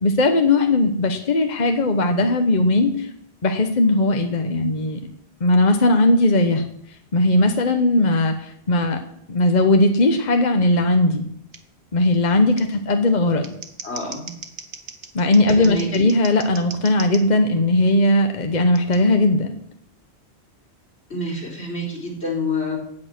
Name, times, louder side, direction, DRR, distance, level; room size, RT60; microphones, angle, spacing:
voice 1, 0.0-3.1 3.4-5.0 5.4-6.6 7.1-9.0 9.3-11.3 11.9-13.5 15.1-19.5, left 2 dB, 45° left, 6 dB, 1.2 m, -18 dB
Scissors, 11.5-11.6 12.6-12.7 13.3-17.2 18.7-19.0, right 5 dB, 70° right, 1.5 m, -38 dB
voice 2, 13.8-14.3 15.5-16.1 21.1-22.8, left 2 dB, 85° left, -2 dB, 4.4 m, -27 dB
16.5 x 8.9 x 6.1 m, 0.69 s
omnidirectional pair, 1.1 m